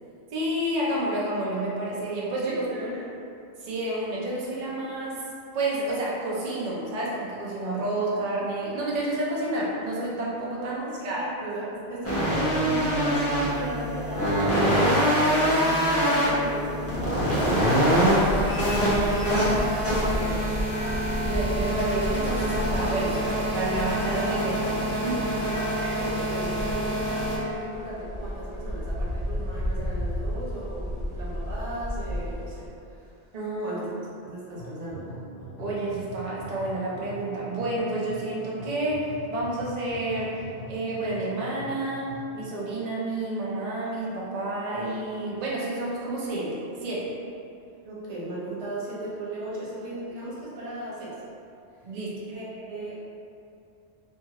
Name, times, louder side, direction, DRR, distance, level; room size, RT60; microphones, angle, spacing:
voice 1, 0.3-2.6 3.6-5.2 5.5-11.3 21.0-25.4 33.3-33.8 35.6-40.4 40.7-47.1 51.8-52.2, right 1 dB, 45° right, -6 dB, 0.6 m, -30 dB
voice 2, 2.4-3.0 10.6-20.5 23.0-23.2 25.4-33.1 33.6-33.9 34.2-35.1 47.8-51.2 52.3-53.0, right 1 dB, 90° right, -8 dB, 1.1 m, -37 dB
sound 1, 12.0-27.4, equal, 15° left, 0.7 m, -25 dB
sound 2, 16.8-32.7, equal, 50° left, 0.5 m, -33 dB
sound 3, 34.6-42.4, right 1 dB, 70° left, 0.8 m, -42 dB
2.7 x 2.5 x 2.8 m, 2.6 s
omnidirectional pair, 1.1 m